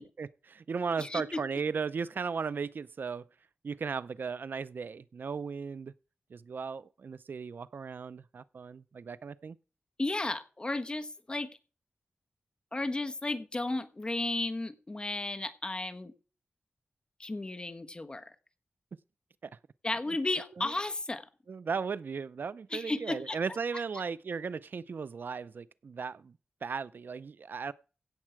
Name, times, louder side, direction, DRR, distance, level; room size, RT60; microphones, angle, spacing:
voice 1, 0.0-3.2 3.6-5.9 6.3-9.6 19.4-19.5 20.6-20.7 21.5-27.7, right 5 dB, 70° right, 0.5 m, -36 dB
voice 2, 1.0-1.4 10.0-11.5 12.7-16.1 17.2-18.3 19.8-21.3 22.7-23.4, left 2 dB, 25° left, 1.2 m, -34 dB
16.5 x 7.4 x 4.6 m
wide cardioid pair, 125°, 3 cm